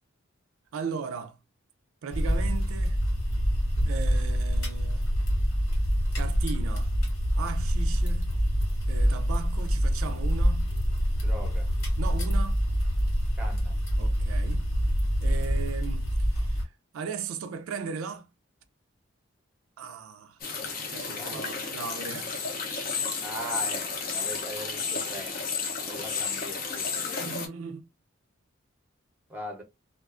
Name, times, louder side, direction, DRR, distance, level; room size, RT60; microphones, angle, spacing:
voice 1, 0.7-1.4 2.0-3.0 3.8-5.2 6.1-6.9 7.4-8.4 8.9-10.8 12.0-12.6 14.0-14.7 15.2-16.6 16.9-18.3 19.8-20.4 20.9-22.4 25.8-26.1 27.2-27.8, right 5 dB, 85° right, 0.4 m, -37 dB
sound 1, 2.1-16.6, equal, 85° left, 1.3 m, -26 dB
voice 2, 11.2-11.7 13.4-13.7 21.1-21.4 23.2-25.5 25.8-27.2 29.3-29.6, right 1 dB, 10° right, 0.6 m, -40 dB
sound 2, 20.4-27.5, left 5 dB, 45° left, 0.5 m, -32 dB
2.4 x 2.3 x 2.3 m
head